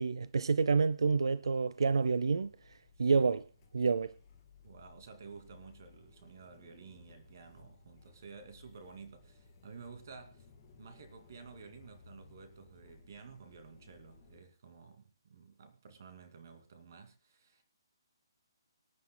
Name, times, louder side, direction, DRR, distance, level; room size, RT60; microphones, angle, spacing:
voice 1, 0.0-2.5 3.0-3.4 3.7-4.1, right 4 dB, 85° right, 0.6 m, -28 dB
sound 1, 2.1-14.4, left 4 dB, 15° left, 2.4 m, -60 dB
voice 2, 4.6-10.5 10.8-17.6, right 5 dB, 40° right, 2.4 m, -53 dB
25.5 x 9.6 x 2.2 m
hypercardioid pair, 175°, 2 cm